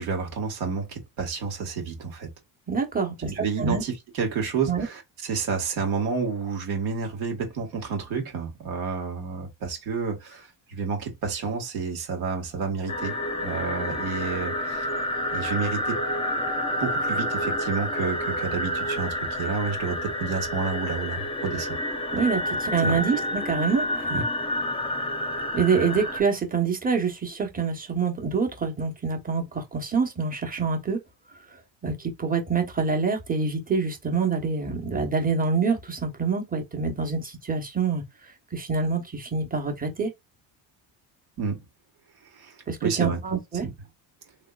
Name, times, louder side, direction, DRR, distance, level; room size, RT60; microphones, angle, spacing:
voice 1, 0.0-2.3 3.3-14.9 15.3-16.0 16.8-21.8 22.8-23.0 24.1-24.2 41.4-41.6 42.3-43.2 43.6-43.7, right 5 dB, 80° right, 1.9 m, -30 dB
voice 2, 2.7-3.3 3.6-3.8 4.7-4.9 22.1-24.2 25.5-31.0 31.8-38.0 38.5-40.1 42.7-43.7, right 5 dB, 20° right, 1.1 m, -26 dB
sound 1, 12.9-26.2, left 1 dB, 15° left, 0.5 m, -29 dB
3.6 x 3.1 x 2.4 m
cardioid pair, 120°, 47 cm